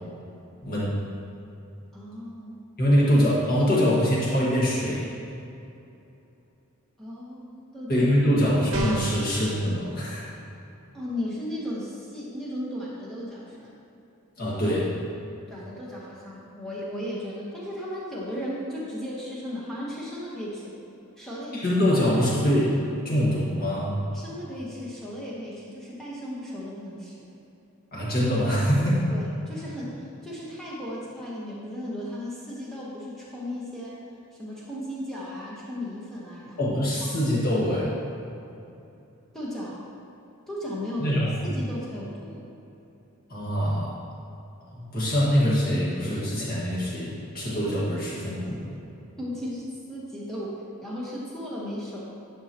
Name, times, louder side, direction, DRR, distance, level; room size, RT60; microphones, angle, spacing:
voice 1, 0.6-1.0 2.8-5.1 7.9-10.3 14.4-14.9 21.5-22.8 23.0-24.0 27.9-29.1 36.6-38.0 41.0-41.5 43.3-43.9 44.7-48.7, equal, 40° left, -6 dB, 1.6 m, -24 dB
voice 2, 1.9-2.6 7.0-8.1 10.9-13.7 15.5-20.7 21.2-21.7 24.1-27.3 29.1-34.0 34.3-36.7 37.0-37.3 39.3-39.8 40.5-42.5 49.2-49.6 49.9-52.0, left 1 dB, ahead, -7 dB, 1.1 m, -35 dB
sound 1, 8.7-9.3, right 2 dB, 75° right, 1.0 m, -29 dB
10.5 x 5.5 x 2.9 m, 2.8 s
head